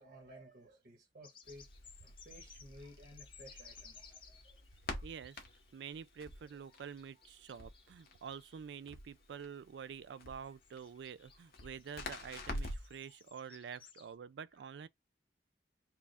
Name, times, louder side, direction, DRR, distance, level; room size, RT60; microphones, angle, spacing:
voice 1, 0.0-1.7 2.0-4.6 4.9-5.1 6.6-6.8 11.3-11.4 14.5-14.6, equal, 60° right, 1.4 m, -57 dB
sound 1, 1.2-8.7 9.2-9.6 9.8-12.3 12.6-14.1, left 6 dB, 30° left, 0.6 m, -60 dB
Crackle, 1.4-13.0, left 1 dB, 60° left, 1.0 m, -48 dB
voice 2, 5.0-5.4 5.7-14.9, right 7 dB, 85° right, 0.3 m, -48 dB
4.7 x 2.4 x 3.4 m
head